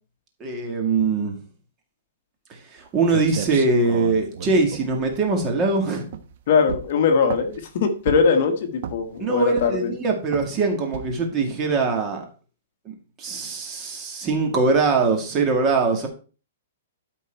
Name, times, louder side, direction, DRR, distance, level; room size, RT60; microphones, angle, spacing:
voice 1, 0.4-1.4 2.7-6.0 9.2-12.2 12.9-16.1, right 3 dB, 20° right, 2 dB, 2.1 m, -22 dB
sound 1, 2.8-2.9 3.1-5.7 6.1-6.4 6.7-7.6 8.1-8.4 8.8-9.2 9.6-9.9 10.3-10.6 10.9-11.3, right 7 dB, 50° right, 1.0 m, -34 dB
voice 2, 6.5-9.9, left 5 dB, 45° left, 7 dB, 1.3 m, -21 dB
13.0 x 4.6 x 4.5 m, 0.36 s
hypercardioid pair, 165°, 0 cm